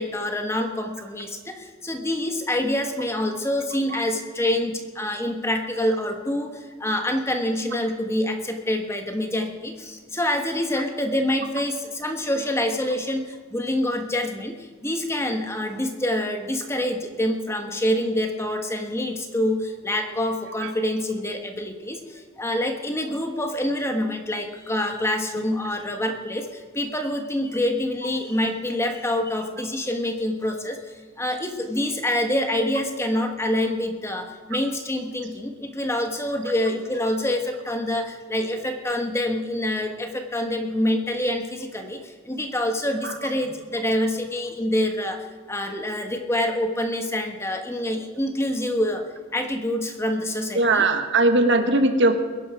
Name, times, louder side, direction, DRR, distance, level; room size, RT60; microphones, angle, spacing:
voice 1, 0.0-49.0 49.3-50.9, left 1 dB, 15° left, 4 dB, 1.3 m, -26 dB
voice 2, 50.5-52.2, right 2 dB, 60° right, 7 dB, 1.4 m, -19 dB
21.5 x 11.0 x 4.9 m, 1.5 s
head